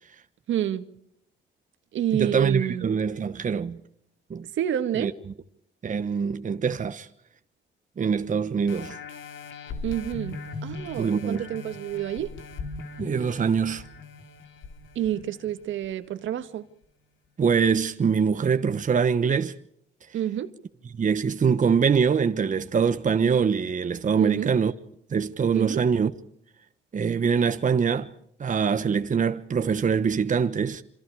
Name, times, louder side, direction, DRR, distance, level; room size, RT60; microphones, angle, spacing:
voice 1, 0.5-0.9 1.9-2.9 4.5-5.1 9.8-12.3 15.0-16.7 20.1-20.5 24.2-24.5 25.5-25.8, right 11 dB, 75° right, 1.9 m, -28 dB
voice 2, 2.2-3.8 4.3-4.5 5.0-5.1 5.8-7.1 8.0-9.0 11.0-11.4 13.0-13.8 17.4-19.6 20.9-24.7 25.1-26.1 26.9-28.1 28.4-30.8, right 6 dB, 40° right, 1.3 m, -24 dB
sound 1, 8.7-15.9 16.4-16.5, left 3 dB, 75° left, 4.1 m, -39 dB
27.0 x 27.0 x 4.9 m
cardioid pair, 90°, 20 cm